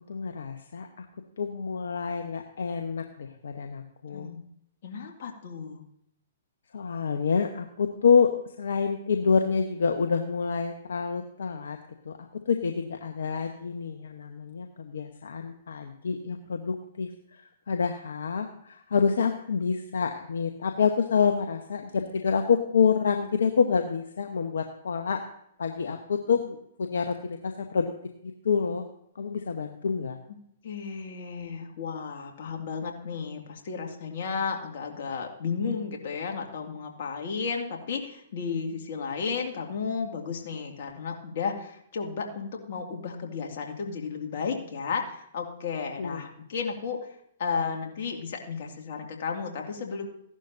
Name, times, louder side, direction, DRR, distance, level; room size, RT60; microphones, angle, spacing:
voice 1, 0.1-1.0 1.4-4.3 6.7-8.3 8.6-11.8 12.0-25.2 25.6-27.8 28.2-28.8 29.1-30.2 46.0-46.2, left 6 dB, 75° left, 5 dB, 1.1 m, -27 dB
voice 2, 4.1-4.4 4.8-5.8 30.3-30.4 30.6-47.1 47.4-50.1, left 5 dB, 60° left, 2 dB, 2.3 m, -33 dB
15.5 x 11.5 x 2.7 m, 0.72 s
hypercardioid pair, 125°, 0 cm